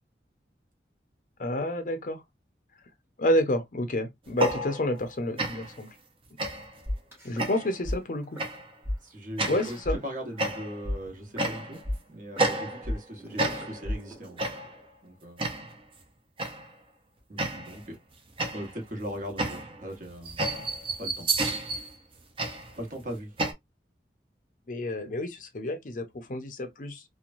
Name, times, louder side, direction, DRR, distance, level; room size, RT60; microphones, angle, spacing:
voice 1, 1.4-2.2 3.2-6.0 7.2-8.4 9.5-10.0 24.7-27.0, left 1 dB, 50° left, 0.6 m, -29 dB
sound 1, 4.3-5.1 5.4-5.8 6.4-6.8 7.4-7.8 8.4-8.7 9.4-9.8 10.4-10.9 11.4-11.9 12.4-13.1 13.4-13.9 14.4-14.8 15.4-15.8 16.4-16.7 17.4-17.9 18.4-23.5, right 2 dB, 30° right, 0.6 m, -31 dB
sound 2, 6.9-8.0 8.2-8.5 8.8-9.0 9.5-10.5 10.8-14.9, left 1 dB, 15° right, 1.0 m, -35 dB
voice 2, 9.0-11.8 12.1-14.5 15.0-15.5 17.3-18.0 18.5-20.4 21.0-21.3 22.8-23.4, equal, 45° right, 1.1 m, -39 dB
3.0 x 2.1 x 2.5 m
head